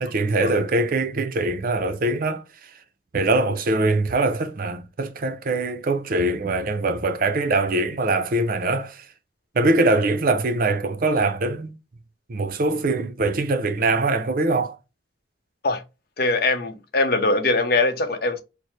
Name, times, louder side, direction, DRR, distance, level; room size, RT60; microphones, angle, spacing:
voice 1, 0.0-2.4 3.1-9.0 9.5-11.7 12.3-14.8, right 2 dB, 50° right, 0.6 m, -22 dB
voice 2, 16.2-18.4, left 2 dB, 60° left, 0.7 m, -22 dB
4.5 x 2.1 x 3.2 m
head